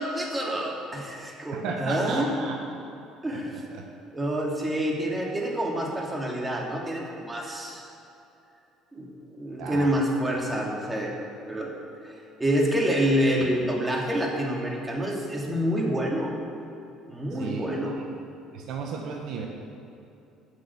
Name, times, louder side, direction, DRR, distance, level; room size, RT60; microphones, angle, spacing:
voice 1, 0.0-2.3 3.2-3.6 4.1-7.9 8.9-11.1 11.5-11.7 12.0-12.1 12.4-16.3 17.1-18.0, equal, 15° right, -1 dB, 2.8 m, -27 dB
voice 2, 1.5-2.5 3.3-3.4 9.6-9.9 17.4-17.7 18.5-19.5, right 5 dB, 70° right, 1 dB, 1.2 m, -33 dB
11.5 x 6.3 x 8.1 m, 2.8 s
supercardioid pair, 70°, 0 cm